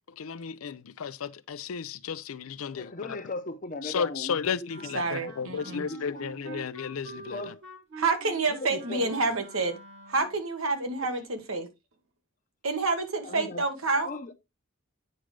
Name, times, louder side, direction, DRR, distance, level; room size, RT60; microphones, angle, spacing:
voice 1, 0.2-2.9 3.8-7.4, left 6 dB, 85° left, 0.5 m, -33 dB
voice 2, 2.7-6.7 7.1-7.6 8.5-9.3 11.1-11.2 13.2-13.7 14.0-14.3, left 2 dB, 40° left, 0.8 m, -39 dB
Wind instrument woodwind instrument, 4.7-10.4, right 3 dB, 55° right, 1.6 m, -46 dB
voice 3, 4.9-5.9 8.0-9.8 10.1-11.7 12.6-14.1, right 3 dB, 85° right, 1.4 m, -28 dB
8.9 x 5.1 x 3.3 m
head